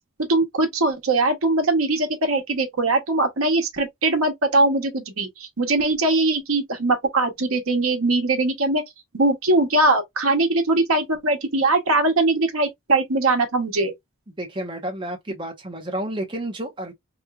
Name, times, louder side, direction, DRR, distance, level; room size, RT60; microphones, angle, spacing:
voice 1, 0.3-8.8 9.1-13.9, right 2 dB, 90° right, 1.0 m, -21 dB
voice 2, 14.4-16.9, right 1 dB, 25° right, 0.9 m, -30 dB
3.1 x 3.0 x 2.3 m
head